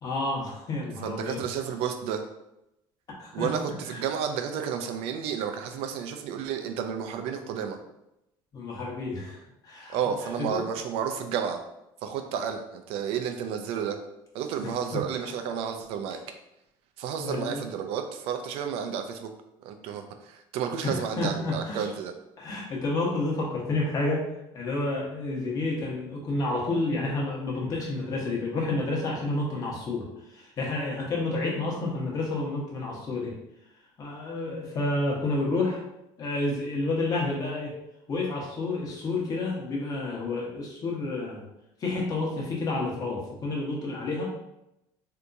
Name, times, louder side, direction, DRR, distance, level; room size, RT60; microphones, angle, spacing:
voice 1, 0.0-1.4 3.2-3.5 3.9-4.0 8.5-10.0 10.4-10.6 14.9-15.0 17.2-17.6 20.8-21.9 22.4-24.2 24.5-33.3 34.0-35.8 36.2-37.7 38.1-41.4 41.8-44.3, left 2 dB, 35° left, -3 dB, 1.0 m, -30 dB
voice 2, 1.0-2.2 3.3-7.8 9.9-11.6 12.0-14.0 14.3-16.2 17.0-19.3 19.6-22.1, right 7 dB, 70° right, 6 dB, 0.5 m, -31 dB
3.4 x 2.8 x 2.6 m, 0.87 s
cardioid pair, 130°, 10 cm